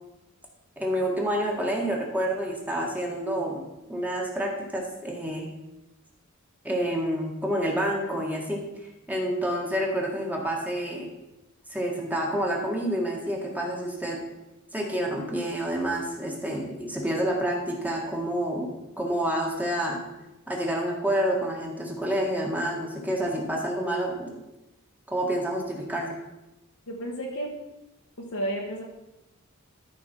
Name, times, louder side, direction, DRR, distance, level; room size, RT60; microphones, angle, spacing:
voice 1, 0.8-3.6 3.9-5.5 6.6-8.6 9.1-11.1 11.7-14.2 14.7-20.0 20.5-24.4 25.1-26.2, right 1 dB, 10° right, -1 dB, 1.8 m, -28 dB
voice 2, 26.9-27.5 28.3-28.8, right 1 dB, 80° left, -2 dB, 1.5 m, -31 dB
13.0 x 5.4 x 4.6 m, 0.96 s
head